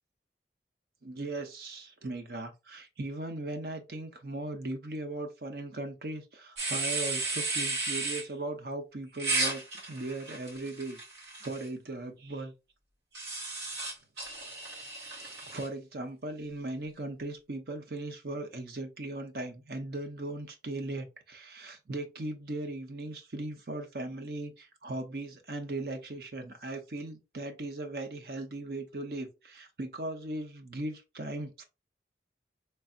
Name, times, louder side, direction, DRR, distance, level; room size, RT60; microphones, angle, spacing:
voice 1, 1.0-9.6 9.9-11.0 11.4-12.5 15.2-31.6, right 2 dB, 60° right, 0.8 m, -38 dB
sound 1, 6.6-8.2 9.2-11.6 13.1-15.7, right 3 dB, 80° right, 1.8 m, -34 dB
4.0 x 3.4 x 2.4 m
head